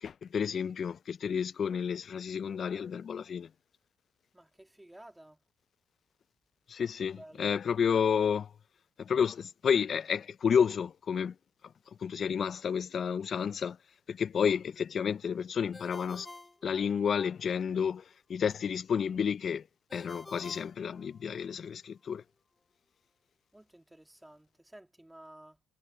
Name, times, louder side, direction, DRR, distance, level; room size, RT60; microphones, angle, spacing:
voice 1, 0.0-3.5 6.7-8.5 9.0-11.3 12.0-13.8 14.1-16.3 16.6-18.0 18.3-19.6 19.9-22.2, left 7 dB, 50° left, 0.3 m, -30 dB
voice 2, 4.3-5.4 6.8-7.6 23.5-25.6, right 1 dB, 10° right, 2.5 m, -54 dB
Ringtone, 15.7-17.4 19.9-21.6, left 2 dB, 15° left, 2.4 m, -50 dB
cardioid pair, 90°, 0 cm